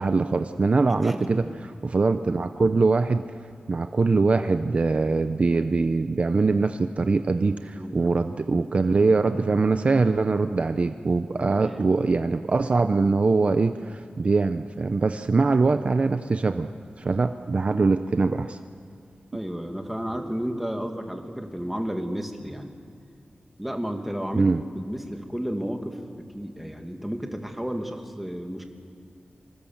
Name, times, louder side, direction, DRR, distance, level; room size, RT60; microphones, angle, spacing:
voice 1, 0.0-3.2 3.7-16.7 17.0-18.6 24.3-24.6, right 3 dB, 45° right, 9 dB, 0.7 m, -23 dB
voice 2, 0.9-1.6 7.8-8.1 11.3-11.7 19.3-22.7 23.6-24.5 24.7-26.0 26.3-28.6, equal, 5° right, 4 dB, 2.1 m, -32 dB
26.0 x 25.0 x 7.3 m, 2.3 s
wide cardioid pair, 130°, 3 cm